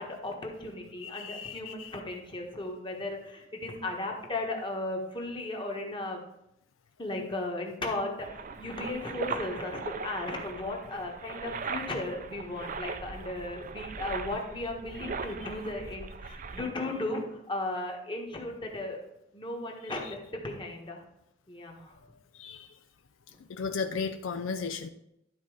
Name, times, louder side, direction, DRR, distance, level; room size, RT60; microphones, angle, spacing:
voice 1, 0.0-6.2 7.0-19.0 19.3-21.0 21.5-21.9, left 2 dB, 25° left, 1 dB, 1.4 m, -36 dB
voice 2, 1.0-1.9 22.4-22.7 23.5-24.9, left 5 dB, 80° left, 9 dB, 0.5 m, -35 dB
sound 1, 8.2-16.6, right 5 dB, 45° right, 0.5 m, -39 dB
11.5 x 4.1 x 4.9 m, 0.83 s
head